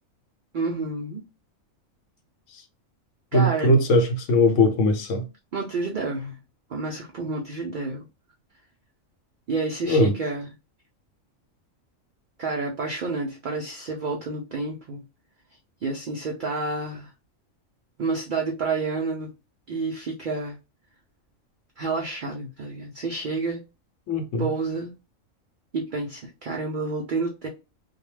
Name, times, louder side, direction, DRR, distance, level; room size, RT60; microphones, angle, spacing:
voice 1, 0.5-1.2 3.3-3.8 5.5-6.4 6.7-8.0 9.5-10.5 12.4-15.0 15.8-17.1 18.0-19.3 19.7-20.6 21.8-23.6 24.4-24.9 25.7-27.5, right 3 dB, 80° right, 0.4 m, -29 dB
voice 2, 3.3-5.3 9.8-10.2 24.1-24.5, left 1 dB, 70° left, 0.9 m, -20 dB
2.2 x 2.2 x 3.0 m
omnidirectional pair, 1.4 m